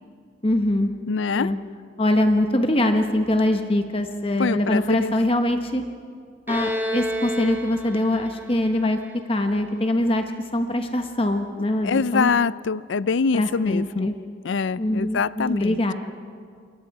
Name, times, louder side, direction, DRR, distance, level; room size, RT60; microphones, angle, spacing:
voice 1, 0.4-0.9 1.3-1.6 2.0-5.8 6.5-9.0 9.3-10.2 10.5-12.3 13.3-14.1 14.8-15.9, left 1 dB, 30° left, 6 dB, 1.0 m, -23 dB
voice 2, 1.1-1.5 4.4-5.1 11.8-14.1 14.4-15.7, left 5 dB, 75° left, 19 dB, 0.4 m, -24 dB
Bowed string instrument, 6.5-10.0, equal, 10° right, 1.9 m, -31 dB
28.5 x 22.5 x 4.7 m, 2.2 s
head